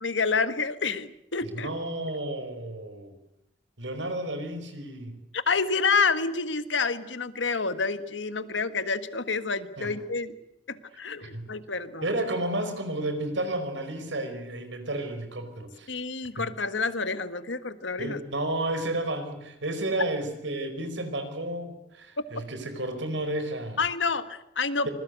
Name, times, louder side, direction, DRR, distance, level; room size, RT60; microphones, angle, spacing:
voice 1, 0.0-1.7 5.3-10.3 10.7-12.1 15.9-18.2 23.8-24.9, left 4 dB, 80° left, 12 dB, 1.6 m, -28 dB
voice 2, 1.4-3.1 3.8-5.2 9.8-9.9 11.2-11.5 12.0-15.9 16.4-16.5 18.0-23.8, right 1 dB, 80° right, 8 dB, 5.0 m, -32 dB
26.0 x 21.0 x 8.2 m, 0.80 s
head